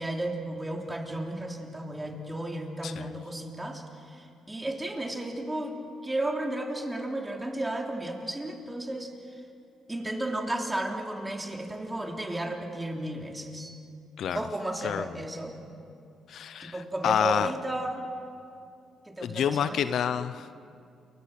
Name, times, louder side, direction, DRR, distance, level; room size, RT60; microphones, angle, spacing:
voice 1, 0.0-5.8 6.0-9.4 9.9-13.8 14.3-15.5 16.6-18.1 19.0-19.9, right 1 dB, 15° right, 1 dB, 3.3 m, -33 dB
voice 2, 16.3-16.7 17.0-17.5 19.2-20.7, left 8 dB, 65° left, 12 dB, 0.7 m, -28 dB
29.0 x 23.0 x 6.0 m, 2.5 s
cardioid pair, 90°, 0 cm